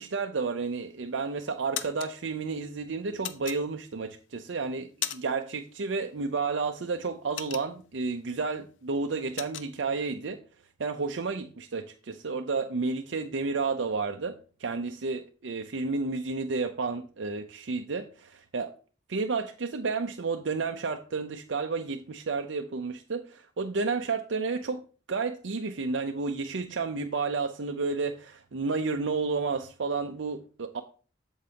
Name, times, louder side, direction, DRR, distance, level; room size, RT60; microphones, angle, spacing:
voice 1, 0.0-10.4 10.8-18.7 19.1-24.8 25.1-30.8, right 4 dB, 75° right, 6 dB, 0.6 m, -31 dB
sound 1, 0.7-1.1 1.5-2.1 3.2-4.1 4.5-5.5 5.8-6.0 6.4-8.1 8.5-8.7 8.9-9.7, left 11 dB, 80° left, 0.6 m, -37 dB
8.4 x 7.3 x 2.9 m, 0.37 s
head